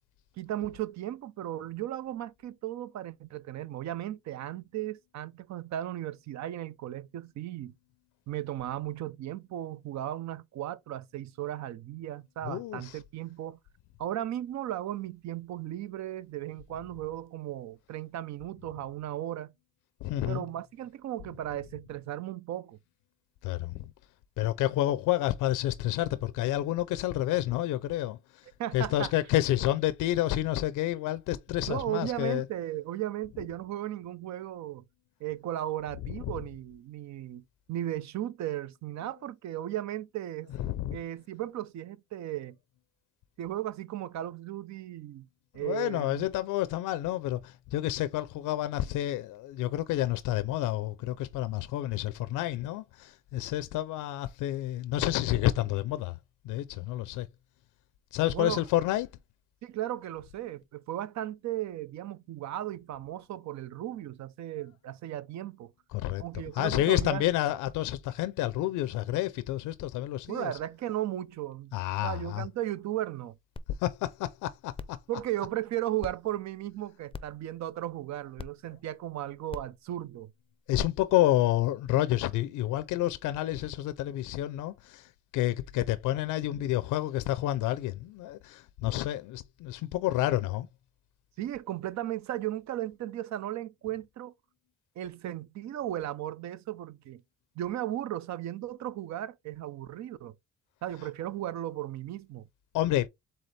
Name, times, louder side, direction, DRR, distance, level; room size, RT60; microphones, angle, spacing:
voice 1, 0.4-7.7 8.3-13.6 14.0-19.5 20.3-22.8 28.6-29.1 31.7-34.8 35.2-37.4 37.7-40.5 40.9-42.6 43.4-45.3 45.5-46.3 58.3-58.6 59.6-65.7 66.2-67.2 70.3-71.7 72.0-73.4 75.1-80.3 91.4-94.3 95.0-97.2 97.6-100.3 100.8-102.5, right 13 dB, 65° right, 0.6 m, -36 dB
voice 2, 12.4-13.0 20.0-20.4 23.4-23.8 24.4-28.4 28.7-32.4 36.2-36.3 40.6-41.0 45.6-56.2 56.4-57.3 58.1-59.1 65.9-66.2 66.5-70.5 71.7-72.5 73.8-75.0 80.7-90.7 102.7-103.1, left 14 dB, 90° left, 0.5 m, -29 dB
sound 1, 73.6-73.7 74.1-74.2 74.7-75.0 76.0-76.1 77.1-77.4 78.4-78.5 79.5-79.7 80.8-80.9, left 5 dB, 20° left, 0.5 m, -40 dB
4.1 x 3.7 x 3.2 m
cardioid pair, 90°, 30 cm